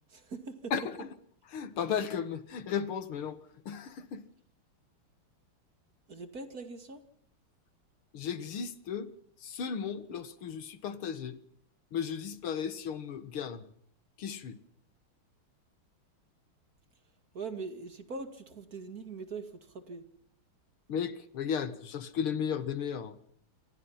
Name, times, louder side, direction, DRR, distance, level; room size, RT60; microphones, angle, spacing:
voice 1, 0.1-0.7 6.1-7.0 17.3-20.0, right 4 dB, 45° right, 8 dB, 2.6 m, -42 dB
voice 2, 0.7-1.1 1.5-3.4 3.7-4.2 8.1-9.1 9.4-11.4 11.9-13.6 14.2-14.6 20.9-23.2, left 7 dB, 80° left, 12 dB, 2.4 m, -35 dB
28.0 x 26.5 x 5.8 m, 0.62 s
omnidirectional pair, 2.4 m